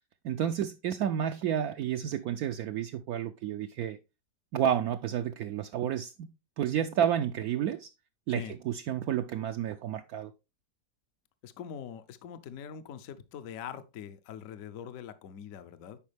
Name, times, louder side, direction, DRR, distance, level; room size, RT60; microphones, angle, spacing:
voice 1, 0.2-4.0 4.5-6.3 6.6-7.9 8.3-10.3, right 9 dB, 70° right, 1.0 m, -30 dB
voice 2, 11.4-16.0, left 8 dB, 65° left, 1.0 m, -43 dB
10.5 x 4.7 x 3.3 m
omnidirectional pair, 1.7 m